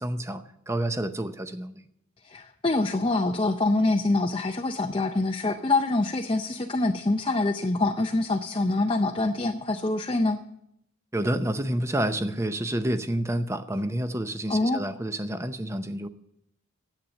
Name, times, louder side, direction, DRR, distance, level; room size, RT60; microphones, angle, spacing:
voice 1, 0.0-1.9 11.1-16.1, right 1 dB, 15° right, 9 dB, 0.7 m, -29 dB
voice 2, 2.2-10.4 14.5-14.8, left 2 dB, 25° left, 3 dB, 0.6 m, -25 dB
10.5 x 8.5 x 8.9 m, 0.77 s
head